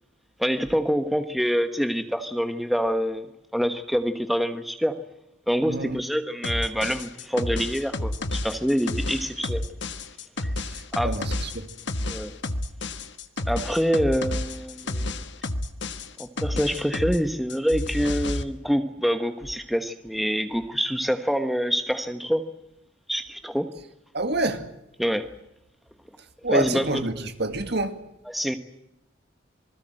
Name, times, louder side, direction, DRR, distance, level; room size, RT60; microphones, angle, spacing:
voice 1, 0.4-3.3 3.5-5.0 5.5-9.6 10.4-10.5 10.9-11.1 12.1-12.4 13.5-15.2 16.2-22.4 23.1-23.7 25.0-25.3 26.5-27.3 28.3-28.6, equal, ahead, 1.3 m, -26 dB
voice 2, 5.7-6.0 10.6-11.7 24.1-24.6 26.4-28.0, right 2 dB, 55° right, 2.3 m, -28 dB
sound 1, 6.4-17.2 17.5-18.4, left 1 dB, 60° left, 1.5 m, -30 dB
27.0 x 20.5 x 7.8 m
head